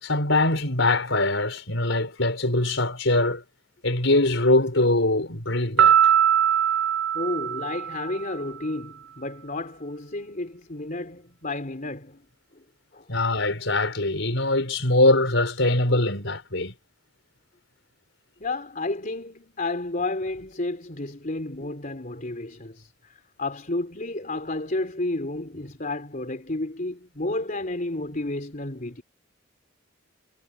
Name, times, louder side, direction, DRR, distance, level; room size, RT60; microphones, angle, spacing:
voice 1, 0.0-3.4 3.8-6.0 13.1-16.7, left 2 dB, 65° left, 5.7 m, -22 dB
Piano, 5.8-8.3, right 9 dB, 75° right, 4.2 m, -21 dB
voice 2, 7.1-12.2 12.5-12.6 12.9-13.1 18.4-29.0, left 2 dB, 40° left, 3.6 m, -31 dB
head